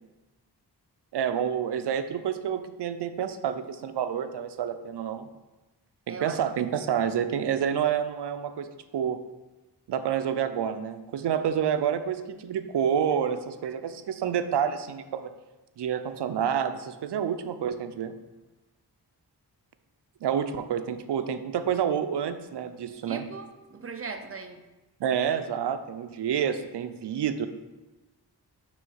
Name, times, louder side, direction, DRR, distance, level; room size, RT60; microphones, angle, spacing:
voice 1, 1.1-5.3 6.1-8.7 8.9-9.2 9.9-15.3 15.8-18.1 20.2-23.2 25.0-27.5, right 8 dB, 80° right, 10 dB, 0.5 m, -28 dB
voice 2, 6.1-6.4 23.0-24.6, right 4 dB, 35° right, 7 dB, 0.5 m, -39 dB
6.2 x 3.2 x 5.5 m, 1.1 s
wide cardioid pair, 130°, 40 cm